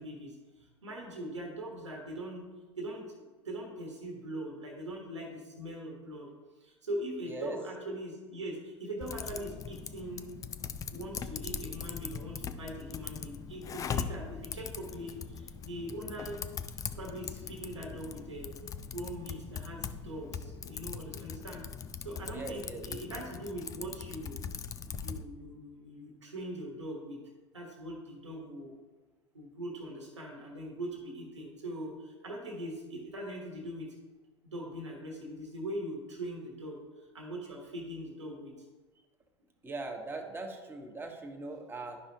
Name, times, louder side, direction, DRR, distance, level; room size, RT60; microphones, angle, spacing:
voice 1, 0.0-2.4 2.8-6.3 6.5-10.4 10.9-16.4 16.9-18.5 18.9-21.6 22.0-24.4 25.0-27.2 27.5-28.7 29.3-33.9 34.4-38.7, right 1 dB, 85° right, 0 dB, 1.3 m, -41 dB
voice 2, 7.3-7.6 22.3-22.8 39.6-42.0, right 2 dB, 15° right, 2 dB, 1.2 m, -40 dB
Typing, 9.0-25.2, left 6 dB, 25° left, 0.4 m, -41 dB
11.5 x 5.4 x 2.8 m, 1.3 s
figure-of-eight pair, 85°, 15 cm